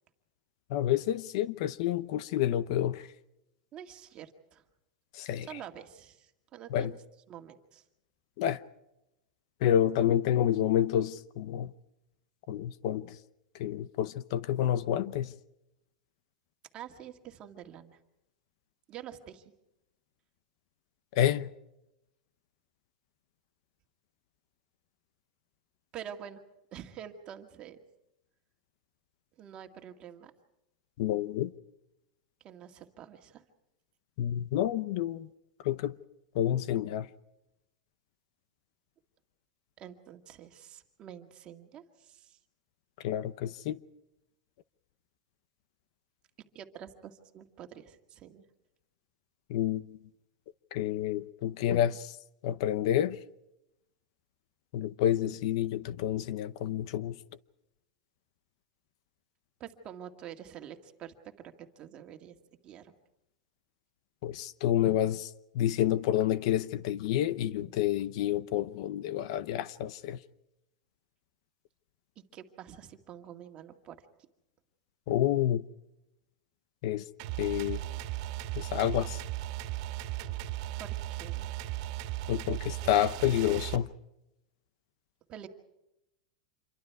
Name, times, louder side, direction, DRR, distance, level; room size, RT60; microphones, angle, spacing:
voice 1, 0.7-3.0 5.1-5.5 6.7-6.9 8.4-8.6 9.6-11.7 12.5-13.1 13.6-15.3 21.1-21.5 31.0-31.5 34.2-35.3 35.6-36.0 36.3-37.1 43.0-43.8 49.5-49.8 50.7-52.1 52.4-53.2 54.7-57.2 64.2-65.3 65.5-70.2 75.1-75.6 76.8-77.0 77.4-77.8 78.6-79.2 82.3-83.9, left 11 dB, 55° left, 0.8 m, -29 dB
voice 2, 3.7-4.6 5.5-7.0 7.3-7.8 16.7-18.0 18.9-19.4 25.9-26.4 26.7-27.8 29.4-30.3 32.4-33.4 39.8-42.4 46.5-48.4 59.6-62.4 62.6-62.9 72.3-74.0 80.7-81.5 85.3-85.5, right 9 dB, 25° right, 2.0 m, -47 dB
sound 1, 77.2-83.8, right 15 dB, 50° right, 2.0 m, -36 dB
27.5 x 23.5 x 4.7 m
supercardioid pair, 160°, 4 cm